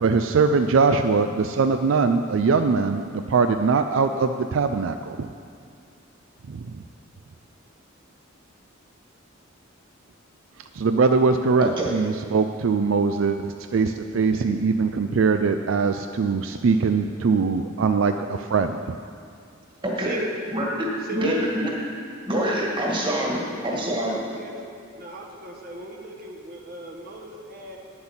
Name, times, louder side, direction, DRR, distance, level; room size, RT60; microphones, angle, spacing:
voice 1, 0.0-5.3 6.5-6.7 10.7-18.8, right 4 dB, 70° right, 8 dB, 0.4 m, -22 dB
voice 2, 11.6-12.0 19.8-20.2 20.5-20.9 21.1-21.7 22.3-24.2, equal, 25° right, -2 dB, 1.9 m, -25 dB
voice 3, 20.0-20.3 21.1-21.4 23.8-23.9 24.4-24.6 25.0-27.8, right 2 dB, 45° right, 0 dB, 1.1 m, -35 dB
9.7 x 7.9 x 7.2 m, 2.3 s
head